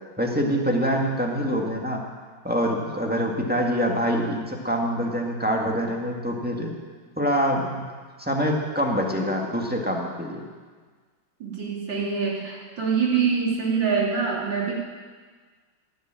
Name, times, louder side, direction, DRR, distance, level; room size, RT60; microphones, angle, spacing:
voice 1, 0.2-2.0 2.4-6.8 7.2-7.8 8.2-10.4, equal, 5° right, -1 dB, 1.8 m, -25 dB
voice 2, 11.4-14.7, right 5 dB, 80° right, -3 dB, 3.5 m, -25 dB
15.5 x 10.5 x 7.7 m, 1.5 s
omnidirectional pair, 2.0 m